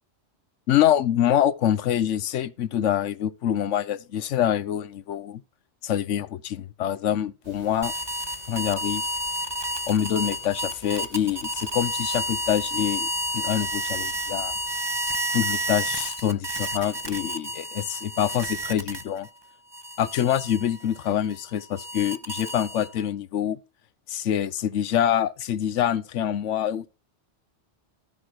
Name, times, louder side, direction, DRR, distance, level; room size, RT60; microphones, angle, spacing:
voice 1, 0.7-5.4 5.8-7.9 8.5-9.0 9.9-14.6 15.3-19.3 20.0-23.6 24.1-26.9, left 10 dB, 85° left, 1.1 m, -25 dB
sound 1, 7.4-14.8, equal, 70° right, 7.3 m, -51 dB
sound 2, 7.8-19.3 19.7-23.1, right 1 dB, 25° right, 0.8 m, -31 dB
13.0 x 5.9 x 4.8 m
omnidirectional pair, 1.2 m